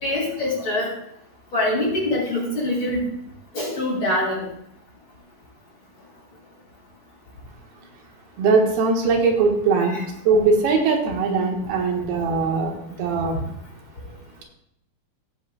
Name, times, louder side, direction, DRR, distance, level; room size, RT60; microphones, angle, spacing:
voice 1, 0.0-0.9 1.5-3.0 3.5-4.4 9.8-9.9 12.3-12.4, left 1 dB, 35° left, -3 dB, 3.0 m, -24 dB
voice 2, 8.4-10.0 10.2-13.3, right 4 dB, 90° right, 1 dB, 3.3 m, -20 dB
16.5 x 7.7 x 2.3 m, 0.76 s
omnidirectional pair, 4.4 m